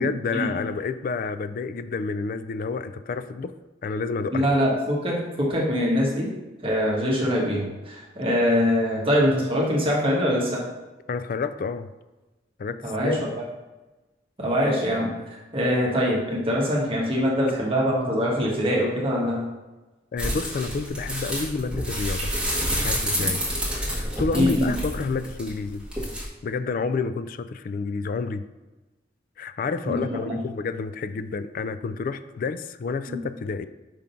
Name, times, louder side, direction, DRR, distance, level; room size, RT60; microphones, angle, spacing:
voice 1, 0.0-3.5 3.8-4.5 11.1-11.9 12.6-13.2 20.1-22.4 22.8-23.4 23.9-25.9 26.4-28.5 29.4-33.7, left 4 dB, 50° left, 12 dB, 0.3 m, -29 dB
voice 2, 4.3-6.3 6.6-10.6 12.8-13.2 14.4-19.4 23.1-23.3 24.3-24.7 29.9-30.3 33.1-33.2, equal, 30° right, -3 dB, 1.2 m, -23 dB
sound 1, 20.2-26.3, equal, 5° right, 1.6 m, -28 dB
5.1 x 3.7 x 5.7 m, 1.1 s
head